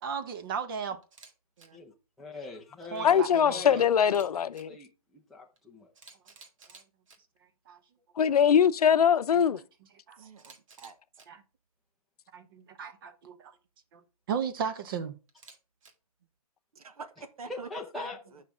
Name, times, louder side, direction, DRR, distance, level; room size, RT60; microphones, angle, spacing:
voice 1, 0.0-1.0 2.9-3.8 10.1-10.2 11.3-11.4 12.3-13.5 13.9-14.0 14.3-15.2, right 6 dB, 35° right, 1.0 m, -35 dB
Camera, 1.0-1.3 1.6-1.7 4.0-4.6 5.6-5.7 5.9-7.2 10.4-11.3 15.3-15.9, right 4 dB, 60° right, 1.8 m, -53 dB
voice 2, 1.7-5.9 17.5-18.2, left 3 dB, ahead, 0.5 m, -42 dB
voice 3, 3.0-4.7 8.2-9.6, left 8 dB, 85° left, 0.6 m, -22 dB
voice 4, 10.2-11.0 16.7-18.4, right 4 dB, 75° right, 1.1 m, -46 dB
8.0 x 5.8 x 3.7 m
hypercardioid pair, 165°, 19 cm